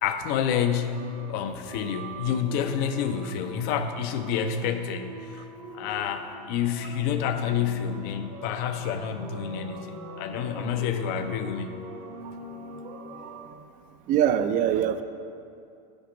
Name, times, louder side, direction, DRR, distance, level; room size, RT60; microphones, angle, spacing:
voice 1, 0.0-5.5 5.7-11.8, left 8 dB, 50° left, 9 dB, 0.6 m, -29 dB
sound 1, 0.9-13.5, right 1 dB, 75° right, 1.6 m, -42 dB
voice 2, 14.1-15.0, right 10 dB, 40° right, 10 dB, 0.5 m, -23 dB
8.7 x 5.0 x 5.0 m, 2.4 s
supercardioid pair, 115°, 21 cm